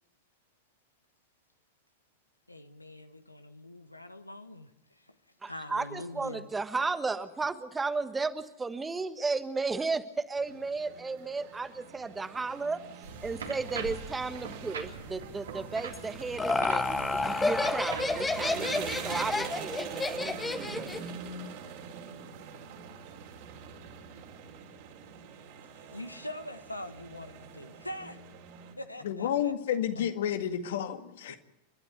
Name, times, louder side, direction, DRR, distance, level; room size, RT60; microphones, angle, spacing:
voice 1, 2.5-5.1 5.4-6.5 25.9-28.2 28.8-29.5 31.3-31.4, left 1 dB, 85° left, 10 dB, 1.4 m, -43 dB
voice 2, 5.4-12.8 13.2-20.9, right 4 dB, 10° right, 12 dB, 1.3 m, -34 dB
sound 1, 10.4-28.7, right 6 dB, 50° right, 3.9 m, -44 dB
sound 2, 13.0-19.3, right 5 dB, 70° right, 3.2 m, -42 dB
Laughter, 15.9-21.1, left 3 dB, 10° left, 1.4 m, -30 dB
voice 3, 29.0-31.4, left 9 dB, 60° left, 9 dB, 1.9 m, -30 dB
30.0 x 12.5 x 9.4 m, 0.94 s
figure-of-eight pair, 90°, 0 cm